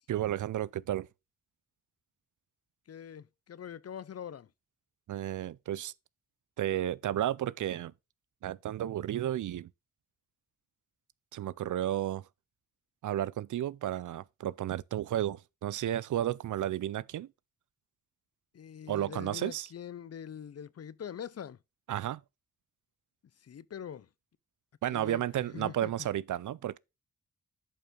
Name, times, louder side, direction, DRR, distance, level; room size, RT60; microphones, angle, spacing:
voice 1, 0.1-1.1 5.1-5.9 6.6-7.9 8.4-9.7 11.3-12.3 13.0-17.3 18.9-19.7 21.9-22.2 24.8-26.8, right 12 dB, 90° right, 0.5 m, -32 dB
voice 2, 2.9-4.5 18.5-21.6 23.4-24.1 24.9-25.2 25.5-25.9, left 8 dB, 55° left, 0.6 m, -43 dB
11.0 x 5.4 x 3.7 m
cardioid pair, 75°, 30 cm